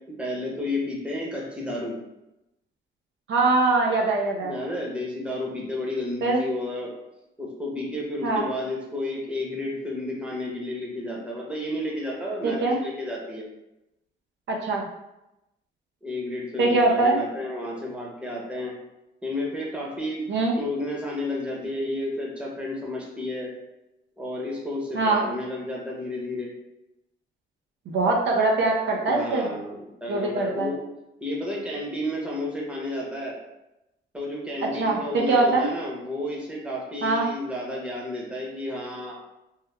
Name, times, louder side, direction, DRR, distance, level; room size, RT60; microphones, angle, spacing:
voice 1, 0.2-1.9 4.4-6.9 7.4-13.5 16.0-18.7 19.2-20.2 20.6-23.5 24.2-26.5 29.0-30.8 31.2-33.4 34.1-39.2, left 1 dB, 5° right, -4 dB, 0.8 m, -31 dB
voice 2, 3.3-4.5 6.2-6.4 8.2-8.4 12.4-12.8 14.5-14.9 16.6-17.2 20.3-20.5 24.9-25.2 27.9-29.5 30.1-30.7 34.7-35.7 37.0-37.3, right 3 dB, 65° right, -1 dB, 0.5 m, -22 dB
3.1 x 2.2 x 2.3 m, 0.91 s
cardioid pair, 90°, 20 cm